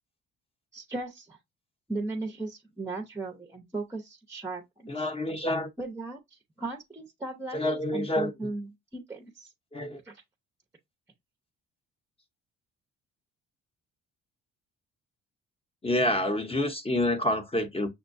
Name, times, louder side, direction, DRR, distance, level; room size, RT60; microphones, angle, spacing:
voice 1, 0.7-1.4 1.9-5.1 5.8-7.6 7.9-9.5 10.0-10.2, right 2 dB, 10° right, 0.7 m, -37 dB
voice 2, 4.9-5.7 7.5-8.3 9.7-10.0 15.8-17.9, left 1 dB, 20° left, 0.8 m, -28 dB
6.2 x 2.2 x 2.6 m
cardioid pair, 90°, 30 cm